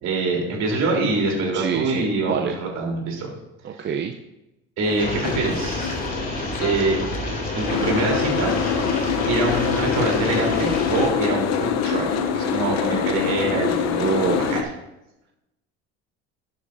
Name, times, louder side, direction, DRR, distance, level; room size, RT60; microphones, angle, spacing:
voice 1, 0.0-3.3 4.8-6.0 6.6-7.0 7.5-12.1 12.3-14.0 14.3-14.6, right 3 dB, 60° right, -1 dB, 3.6 m, -25 dB
voice 2, 1.5-2.5 3.6-4.2 13.9-14.7, right 6 dB, 40° right, 4 dB, 0.7 m, -26 dB
Boat Water vehicle, 4.8-14.6, left 7 dB, 60° left, 0.9 m, -25 dB
sound 1, 5.0-11.1, left 1 dB, 30° left, 2.9 m, -29 dB
11.0 x 8.5 x 2.7 m, 0.94 s
supercardioid pair, 95°, 29 cm